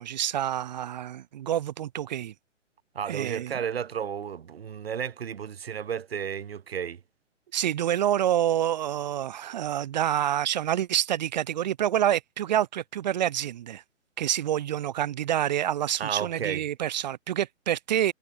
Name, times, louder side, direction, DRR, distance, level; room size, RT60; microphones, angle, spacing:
voice 1, 0.0-2.3 3.1-3.6 7.5-13.8 14.2-18.1, right 11 dB, 35° right, 1.5 m, -27 dB
voice 2, 2.9-7.0 16.0-16.6, right 8 dB, 50° right, 6.6 m, -32 dB
figure-of-eight pair, 135°, 38 cm